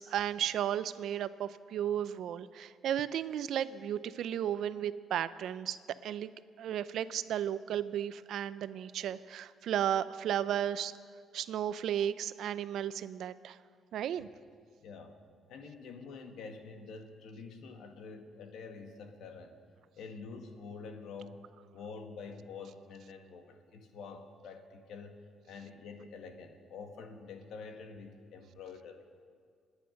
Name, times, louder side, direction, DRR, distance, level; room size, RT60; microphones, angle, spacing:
voice 1, 0.0-5.8 6.0-6.3 6.6-10.9 11.3-13.6 13.9-14.3, right 10 dB, 75° right, 15 dB, 0.6 m, -34 dB
voice 2, 14.8-15.2 15.5-19.6 20.0-21.4 21.7-29.1, left 4 dB, 80° left, 5 dB, 1.8 m, -47 dB
26.5 x 10.0 x 5.3 m, 2.1 s
cardioid pair, 90°, 0 cm